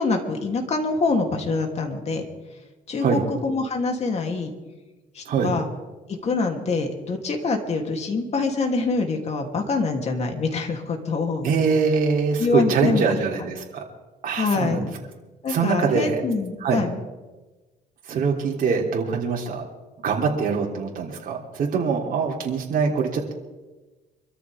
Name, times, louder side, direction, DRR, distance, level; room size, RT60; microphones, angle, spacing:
voice 1, 0.0-2.3 2.9-4.5 5.1-5.7 6.1-11.5 12.4-13.2 14.4-14.8 15.4-17.0, left 3 dB, 40° left, 2 dB, 3.0 m, -25 dB
voice 2, 11.4-13.8 14.2-14.9 15.5-16.2 16.6-16.8 18.0-19.7 20.0-23.3, right 5 dB, 55° right, -1 dB, 3.2 m, -23 dB
25.0 x 13.5 x 3.6 m, 1.2 s
cardioid pair, 110°, 17 cm